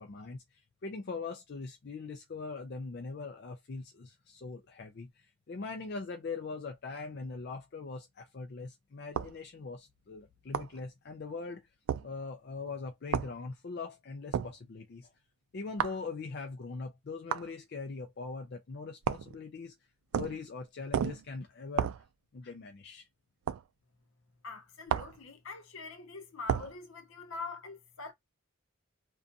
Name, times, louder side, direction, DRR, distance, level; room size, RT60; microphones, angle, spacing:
voice 1, 0.0-11.6 12.0-15.1 15.5-19.8 20.1-21.9 22.3-23.1, left 4 dB, 50° left, 0.4 m, -41 dB
sound 1, 9.2-9.4 10.5-10.8 11.9-12.1 13.1-13.3 14.3-14.6 15.8-16.0 17.3-17.5 19.0-19.4 20.1-20.4 20.9-21.3 21.8-22.0 23.5-23.6 24.9-25.2 26.5-26.7, right 8 dB, 85° right, 0.3 m, -32 dB
voice 2, 24.4-28.1, left 4 dB, 75° left, 0.7 m, -44 dB
2.5 x 2.3 x 2.5 m
head